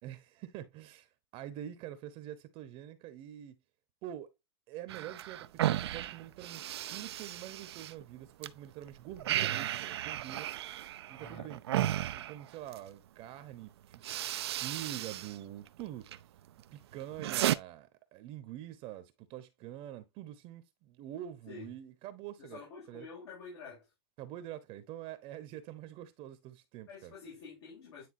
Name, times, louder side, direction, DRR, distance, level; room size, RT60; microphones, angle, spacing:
voice 1, 0.0-3.6 4.0-4.3 4.7-10.5 11.1-11.6 12.3-16.2 16.7-22.6 22.9-23.1 24.2-27.1, right 12 dB, 45° right, 0.9 m, -46 dB
sound 1, 4.9-8.5 8.8-12.9 13.5-13.7 13.9-15.4 15.7-16.2 16.6-17.6, right 13 dB, 75° right, 0.5 m, -35 dB
voice 2, 11.2-11.5 21.5-21.7 22.4-23.9 26.9-28.1, left 4 dB, 75° left, 4.2 m, -48 dB
9.6 x 3.8 x 2.6 m
hypercardioid pair, 115°, 14 cm